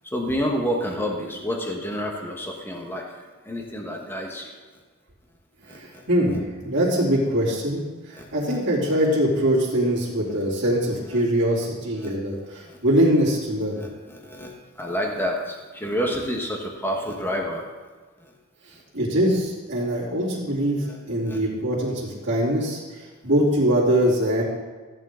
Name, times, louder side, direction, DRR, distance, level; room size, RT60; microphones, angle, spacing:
voice 1, 0.0-3.1 3.4-4.5 5.6-6.1 8.1-8.6 11.1-11.2 12.0-12.1 12.6-12.8 13.7-17.7 18.2-18.3 20.8-21.0 21.2-21.4, equal, 10° left, 1 dB, 1.3 m, -29 dB
voice 2, 5.7-13.8 18.9-24.4, equal, 55° right, -7 dB, 3.2 m, -23 dB
15.0 x 8.6 x 3.8 m, 1.4 s
head